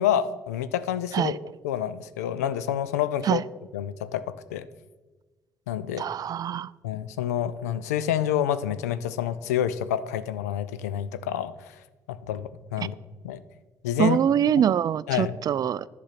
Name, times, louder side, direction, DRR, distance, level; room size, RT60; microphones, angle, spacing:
voice 1, 0.0-1.4 1.6-3.4 3.7-4.7 5.7-6.1 6.8-11.7 12.1-13.0 13.2-13.4 13.8-14.2 15.1-15.4, left 10 dB, 90° left, 14 dB, 0.4 m, -28 dB
voice 2, 6.0-6.7 14.0-15.9, right 9 dB, 50° right, 20 dB, 0.3 m, -24 dB
10.5 x 6.0 x 5.8 m, 1.2 s
hypercardioid pair, 50°, 8 cm